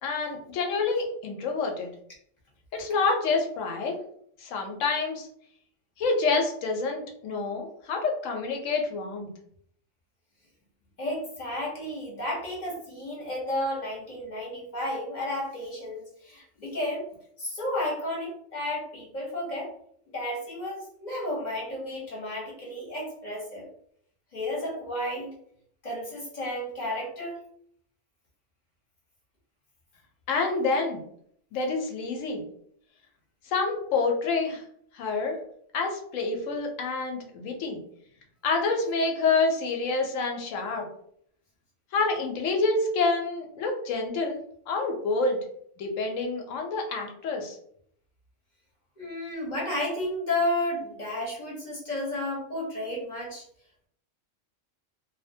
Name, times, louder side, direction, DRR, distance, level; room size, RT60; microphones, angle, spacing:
voice 1, 0.0-1.9 2.7-4.0 4.4-5.3 6.0-9.3 30.3-31.0 31.5-32.4 33.5-34.6 34.9-35.4 35.7-37.8 38.4-40.9 41.9-44.4 44.7-45.4 45.8-47.6, left 3 dB, 75° left, 2 dB, 0.9 m, -27 dB
voice 2, 11.0-19.7 20.1-23.7 24.3-25.3 25.8-27.4 49.0-53.4, left 1 dB, 40° left, -4 dB, 0.8 m, -32 dB
2.5 x 2.1 x 2.6 m, 0.65 s
omnidirectional pair, 1.4 m